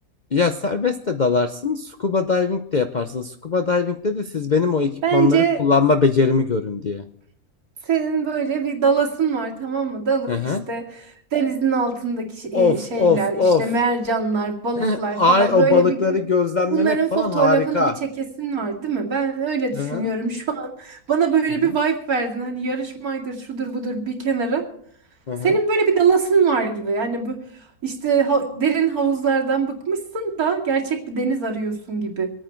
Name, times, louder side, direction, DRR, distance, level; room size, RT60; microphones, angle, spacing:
voice 1, 0.3-7.0 10.3-10.6 12.5-13.6 14.8-17.9 19.8-20.1 25.3-25.6, left 4 dB, 45° left, 7 dB, 0.6 m, -21 dB
voice 2, 5.0-5.6 7.9-16.2 16.7-24.6 25.4-32.3, right 5 dB, 70° right, 0 dB, 2.8 m, -23 dB
24.5 x 9.0 x 4.5 m, 0.62 s
omnidirectional pair, 1.6 m